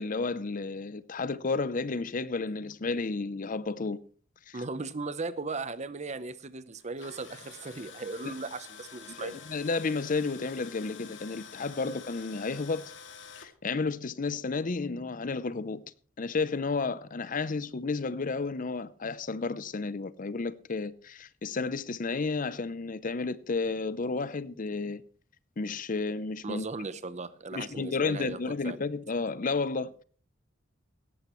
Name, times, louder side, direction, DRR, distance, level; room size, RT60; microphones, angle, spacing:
voice 1, 0.0-4.0 4.5-4.6 8.2-8.3 9.1-12.8 13.4-15.8 16.2-25.0 25.6-26.6 27.5-30.0, left 4 dB, 40° left, 0.6 m, -32 dB
voice 2, 4.5-9.4 11.8-11.9 26.4-28.4 28.6-28.8, right 3 dB, 35° right, 0.8 m, -37 dB
Tools, 6.8-13.5, left 7 dB, 65° left, 2.2 m, -48 dB
17.5 x 14.0 x 3.1 m
head